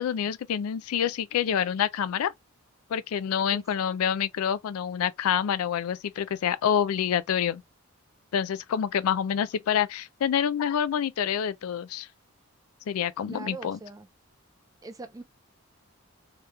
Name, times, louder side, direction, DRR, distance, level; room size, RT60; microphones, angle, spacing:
voice 1, 0.0-2.3 2.9-7.6 8.3-12.1 12.9-13.8, left 8 dB, 80° left, 0.3 m, -27 dB
voice 2, 3.5-3.8 13.3-14.1 14.8-15.2, right 3 dB, 15° right, 0.4 m, -42 dB
2.9 x 2.3 x 3.1 m
head